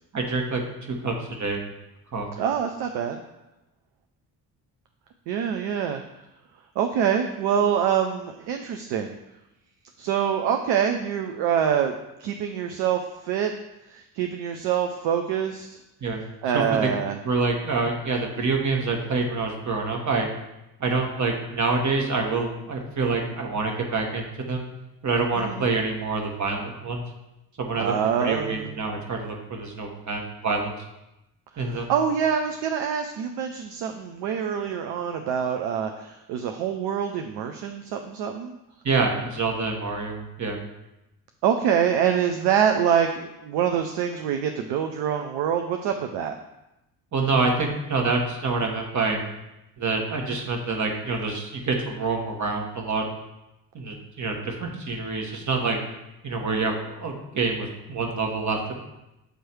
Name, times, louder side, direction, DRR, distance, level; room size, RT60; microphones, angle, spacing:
voice 1, 0.1-1.6 2.1-2.4 16.0-16.2 16.5-16.9 17.2-20.3 20.8-24.6 25.0-27.0 27.6-30.7 31.6-31.9 38.8-40.6 47.1-49.2 49.8-53.0 53.7-55.8 56.2-58.8, right 3 dB, 35° right, 2 dB, 1.4 m, -26 dB
voice 2, 2.4-3.2 5.3-6.0 6.8-9.1 10.0-13.5 13.9-15.7 16.4-17.2 25.4-25.6 27.8-28.7 31.7-38.6 41.4-46.4, right 8 dB, 55° right, 5 dB, 0.6 m, -25 dB
8.0 x 3.1 x 4.5 m, 0.93 s
figure-of-eight pair, 45°, 50 cm